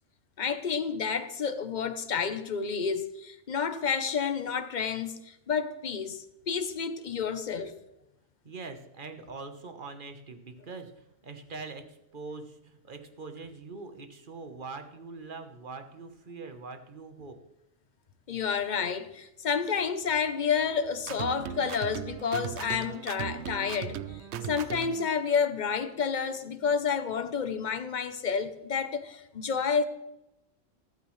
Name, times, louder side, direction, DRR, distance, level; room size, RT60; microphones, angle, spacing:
voice 1, 0.4-7.7 18.3-24.0 24.4-29.8, left 6 dB, 45° left, 0.9 m, -30 dB
voice 2, 8.4-17.4, right 4 dB, 45° right, 1.3 m, -43 dB
sound 1, 21.0-25.1, right 8 dB, 70° right, 0.9 m, -38 dB
14.5 x 12.5 x 3.2 m
omnidirectional pair, 1.2 m